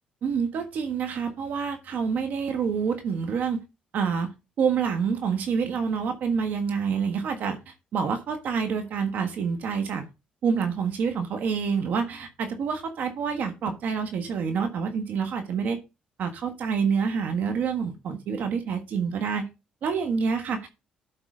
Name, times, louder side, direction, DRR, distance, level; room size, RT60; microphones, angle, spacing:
voice 1, 0.2-3.6 3.9-4.3 4.6-10.0 10.4-15.8 16.2-19.5 19.8-20.7, right 6 dB, 65° right, 6 dB, 1.5 m, -27 dB
12.0 x 4.8 x 3.8 m, 0.27 s
cardioid pair, 80°, 3 cm